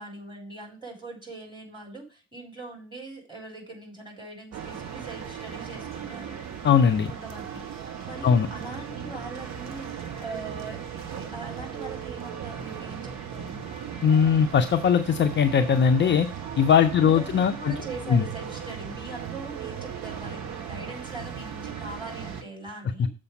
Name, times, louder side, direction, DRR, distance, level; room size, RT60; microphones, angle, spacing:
voice 1, 0.0-6.4 7.1-7.6 8.0-9.9 10.2-13.7 17.0-23.1, right 2 dB, 10° right, 0 dB, 4.4 m, -41 dB
sound 1, 4.5-22.4, right 8 dB, 45° right, 1.2 m, -37 dB
voice 2, 6.6-7.1 8.2-8.5 14.0-16.3 16.6-17.8 18.1-18.2, left 7 dB, 30° left, 7 dB, 0.6 m, -20 dB
6.9 x 5.1 x 6.7 m, 0.36 s
figure-of-eight pair, 45°, 37 cm